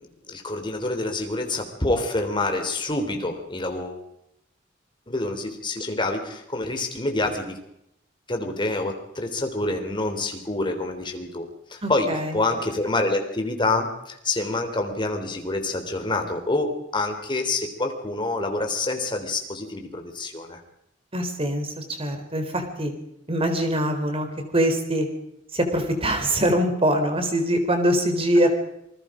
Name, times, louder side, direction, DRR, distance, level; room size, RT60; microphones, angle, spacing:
voice 1, 0.0-4.0 5.1-7.6 8.3-20.6, left 2 dB, 25° left, 4 dB, 3.5 m, -27 dB
voice 2, 11.8-12.4 21.1-22.9 23.3-24.3 24.5-25.1 25.5-28.5, right 1 dB, 30° right, 6 dB, 3.8 m, -23 dB
27.5 x 20.5 x 5.1 m, 0.81 s
head